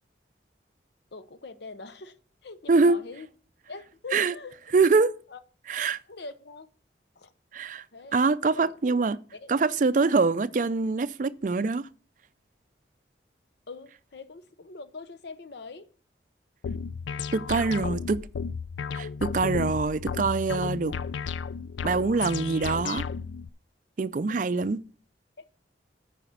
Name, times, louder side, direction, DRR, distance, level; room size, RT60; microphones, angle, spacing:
voice 1, 1.1-2.2 2.4-3.3 3.7-4.5 5.3-5.4 6.1-6.7 7.2-7.3 7.9-8.8 9.3-9.7 13.7-15.9 17.5-18.0 24.0-24.6, left 3 dB, 65° left, 0.7 m, -43 dB
voice 2, 4.7-5.1 5.7-6.0 7.5-7.8 8.1-9.2 9.5-11.9 17.3-18.2 18.9-20.9 21.8-23.1 24.0-24.8, right 4 dB, 45° right, 0.4 m, -24 dB
sound 1, 16.6-23.5, left 6 dB, 85° left, 0.4 m, -33 dB
9.1 x 5.0 x 5.9 m
head